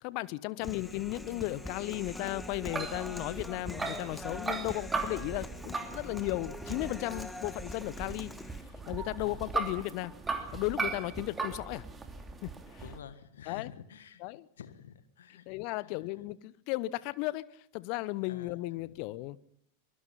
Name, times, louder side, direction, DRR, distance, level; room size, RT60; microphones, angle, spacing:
voice 1, 0.0-8.3 8.9-10.1 10.5-11.8 12.4-12.8 13.5-13.7 14.2-14.5 15.5-17.5 17.7-19.4, left 19 dB, 45° left, 20 dB, 0.8 m, -35 dB
Human voice, 0.6-8.6, left 2 dB, 5° left, 1.5 m, -44 dB
sound 1, 0.9-13.0, right 3 dB, 15° right, 2.8 m, -39 dB
voice 2, 12.8-14.2 14.6-15.4 15.8-16.0 18.3-19.0, left 8 dB, 65° left, 12 dB, 1.7 m, -50 dB
23.5 x 21.0 x 5.7 m, 0.69 s
figure-of-eight pair, 90°, 0 cm